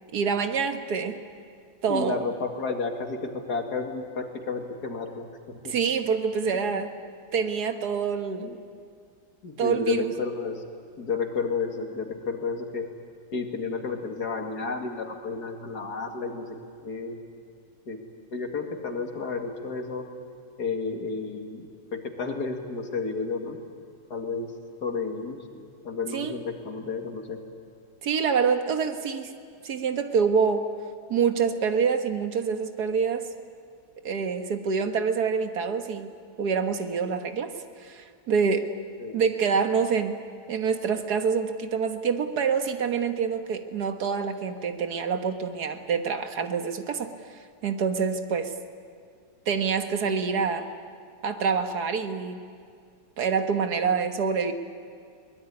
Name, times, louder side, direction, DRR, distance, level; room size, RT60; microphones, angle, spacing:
voice 1, 0.1-1.2 1.8-2.2 5.7-6.9 7.3-8.6 9.6-10.1 26.1-26.4 28.0-29.3 29.6-30.7 31.1-33.3 34.1-37.5 37.8-38.7 39.1-40.2 40.5-47.1 47.6-48.5 49.5-50.7 51.2-52.4 53.2-54.5, right 6 dB, 70° right, 7 dB, 1.9 m, -26 dB
voice 2, 1.9-5.3 5.6-5.7 6.5-6.8 8.4-8.5 9.4-10.6 11.0-12.8 13.3-16.5 16.8-17.1 17.9-18.0 18.3-20.0 20.6-21.6 21.9-23.6 24.1-24.5 24.8-25.4 25.8-27.4 39.0-39.2, left 4 dB, 70° left, 3 dB, 2.7 m, -31 dB
22.5 x 20.0 x 9.7 m, 2.3 s
omnidirectional pair, 1.8 m